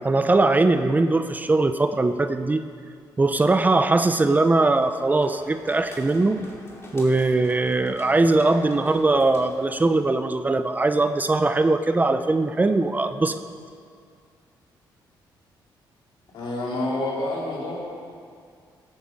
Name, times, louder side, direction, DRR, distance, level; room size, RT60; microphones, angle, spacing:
voice 1, 0.0-2.6 3.2-6.4 6.9-13.4, right 2 dB, 20° right, 9 dB, 0.6 m, -21 dB
sound 1, 4.8-10.2, equal, 30° left, 2.6 m, -45 dB
voice 2, 16.3-17.8, left 1 dB, 80° left, -5 dB, 4.0 m, -28 dB
16.0 x 9.6 x 5.2 m, 2.2 s
cardioid pair, 105°, 8 cm